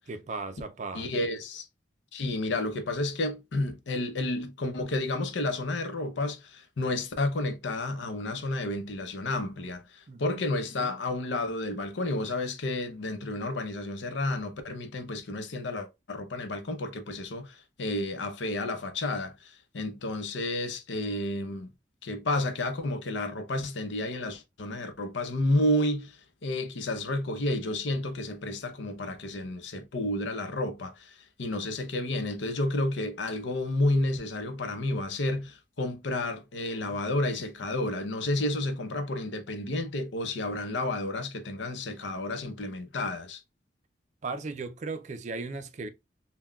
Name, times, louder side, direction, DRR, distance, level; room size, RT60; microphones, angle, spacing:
voice 1, 0.1-1.1 10.1-10.4 44.2-45.9, right 3 dB, 40° right, 0.4 m, -36 dB
voice 2, 0.9-1.7 2.1-21.7 22.0-43.4, left 2 dB, 85° left, 0.7 m, -31 dB
5.6 x 2.2 x 2.2 m
head